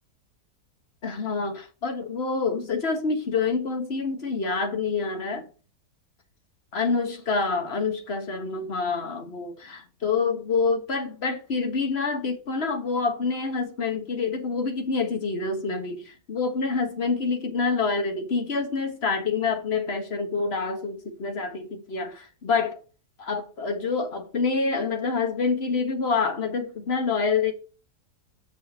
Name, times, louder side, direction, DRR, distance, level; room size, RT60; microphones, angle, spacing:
voice 1, 1.0-5.4 6.7-22.8 23.2-27.5, left 4 dB, 40° left, 1.5 m, -27 dB
7.2 x 5.5 x 6.4 m
omnidirectional pair, 1.7 m